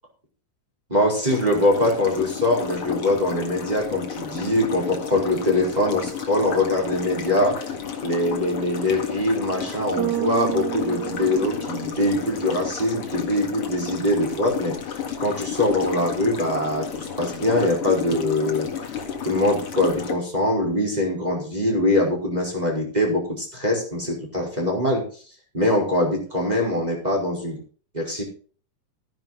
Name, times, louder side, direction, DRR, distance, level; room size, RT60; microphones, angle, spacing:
voice 1, 0.9-7.8 8.0-18.7 19.2-25.0 25.5-27.6 27.9-28.2, left 1 dB, 10° right, -1 dB, 4.8 m, -23 dB
sound 1, 1.3-20.1, left 7 dB, 50° left, 2.4 m, -32 dB
Bass guitar, 10.0-12.3, right 16 dB, 75° right, 1.8 m, -30 dB
14.0 x 10.5 x 4.1 m, 0.41 s
omnidirectional pair, 3.9 m